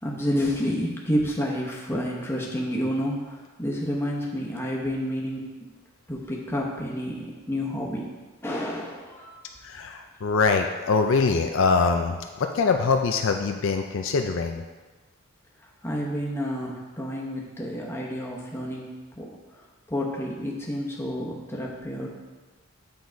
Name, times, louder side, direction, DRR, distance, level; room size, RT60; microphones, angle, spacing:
voice 1, 0.0-5.5 6.1-8.1 8.4-9.7 15.6-19.3 19.5-22.1, equal, 10° left, -3 dB, 0.9 m, -30 dB
voice 2, 9.6-14.6, left 4 dB, 60° left, 4 dB, 0.4 m, -23 dB
8.6 x 4.0 x 4.6 m, 1.3 s
head